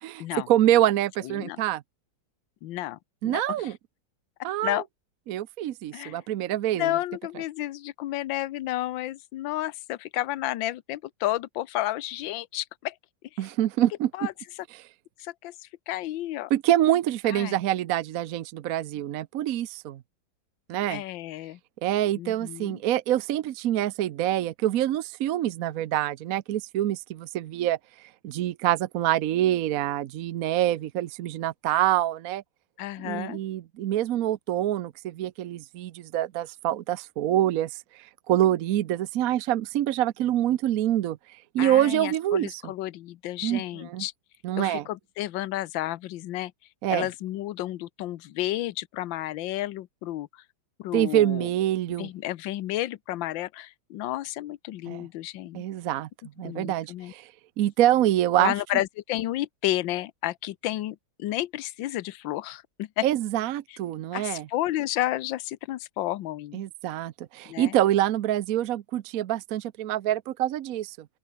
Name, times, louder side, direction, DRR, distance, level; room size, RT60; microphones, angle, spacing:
voice 1, 0.0-1.8 3.2-3.8 4.4-4.8 5.3-6.9 13.4-14.3 16.5-20.0 20.7-21.0 21.8-27.8 28.2-32.4 33.0-41.2 41.5-42.6 43.4-44.0 44.4-44.8 46.8-47.1 50.9-52.1 54.9-55.1 55.5-56.1 56.4-57.3 57.6-58.5 63.0-64.5 66.5-71.1, right 12 dB, 65° right, 0.9 m, -26 dB
voice 2, 1.2-1.6 2.6-3.7 4.6-4.8 5.9-6.2 6.8-12.9 13.3-13.4 14.1-14.3 15.2-16.5 17.3-17.6 20.9-21.6 22.2-22.8 32.8-33.4 41.6-44.1 44.6-46.5 46.9-50.4 50.8-51.5 52.0-55.6 56.4-57.1 58.4-63.1 63.7-63.8 64.1-66.6 67.5-67.8, left 15 dB, 75° left, 1.5 m, -31 dB
open air
omnidirectional pair, 2.2 m